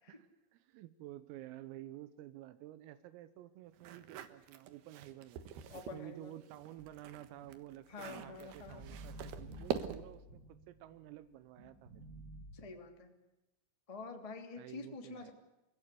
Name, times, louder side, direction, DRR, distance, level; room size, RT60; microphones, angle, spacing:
voice 1, 0.1-5.5 5.7-12.1 14.6-15.3, right 14 dB, 85° right, 13 dB, 3.6 m, -51 dB
sound 1, 3.8-6.0 6.4-10.2, right 9 dB, 65° right, 2.7 m, -44 dB
voice 2, 5.7-6.3 7.9-8.8 12.5-13.1 13.9-15.3, left 4 dB, 15° left, 4 dB, 1.2 m, -47 dB
sound 2, 6.8-11.1 11.6-12.5, right 1 dB, 25° right, 1.5 m, -53 dB
28.0 x 16.5 x 8.4 m, 0.99 s
omnidirectional pair, 6.0 m